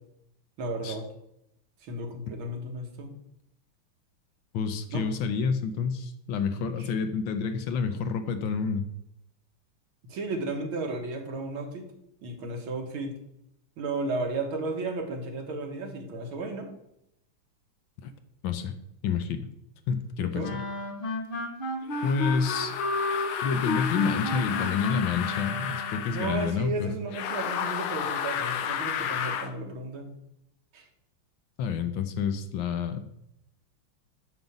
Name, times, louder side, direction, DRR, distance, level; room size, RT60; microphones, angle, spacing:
voice 1, 0.6-1.1 1.8-3.1 4.9-5.1 6.7-6.9 10.0-11.9 12.2-13.1 13.8-16.7 20.3-20.5 26.1-30.1 30.7-30.9, right 2 dB, 80° right, 2 dB, 2.3 m, -34 dB
voice 2, 4.5-8.9 18.0-18.1 18.4-18.7 19.0-19.5 19.9-20.6 22.0-22.7 23.4-27.0 31.6-33.2, left 6 dB, 75° left, 9 dB, 1.5 m, -29 dB
sound 1, 20.4-26.1, left 2 dB, 40° left, 0.8 m, -32 dB
sound 2, 21.9-26.6 27.1-29.5, left 8 dB, 90° left, 1.6 m, -32 dB
9.1 x 4.0 x 7.1 m, 0.78 s
omnidirectional pair, 2.2 m